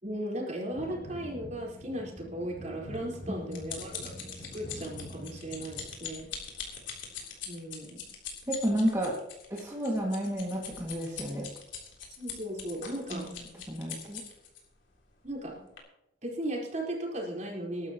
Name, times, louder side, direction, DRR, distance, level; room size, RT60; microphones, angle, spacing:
voice 1, 0.0-6.3 7.4-8.1 12.2-13.4 15.2-15.6 16.2-17.9, right 1 dB, 40° right, -3 dB, 4.4 m, -37 dB
sound 1, 0.7-5.8, equal, 65° left, 4.6 m, -45 dB
sound 2, 2.9-14.6 15.2-15.4 15.8-15.9, left 7 dB, 80° left, 3.6 m, -42 dB
voice 2, 3.3-3.6 8.5-9.2 9.5-11.5 13.1-13.4 13.7-14.2, equal, 15° right, -4 dB, 2.2 m, -31 dB
21.0 x 12.0 x 3.0 m, 0.86 s
head